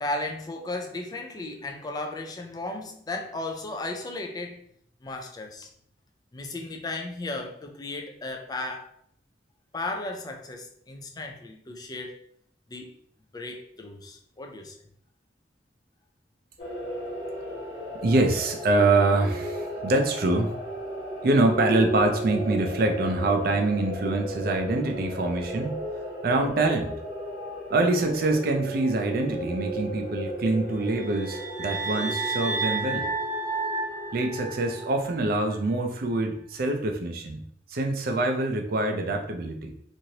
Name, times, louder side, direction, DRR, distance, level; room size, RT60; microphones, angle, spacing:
voice 1, 0.0-4.6 5.0-5.7 6.3-8.9 9.7-12.2 12.7-12.9 13.3-14.8, left 2 dB, 20° left, 3 dB, 0.4 m, -35 dB
sound 1, 16.6-35.0, equal, 70° left, 1.1 m, -35 dB
voice 2, 18.0-20.5 21.2-25.8 26.2-26.9 27.7-33.1 34.1-37.4 37.7-39.7, right 2 dB, 55° right, 4 dB, 0.4 m, -25 dB
sound 2, 30.8-35.1, right 3 dB, 15° right, 0.7 m, -31 dB
3.0 x 2.6 x 2.7 m, 0.65 s
head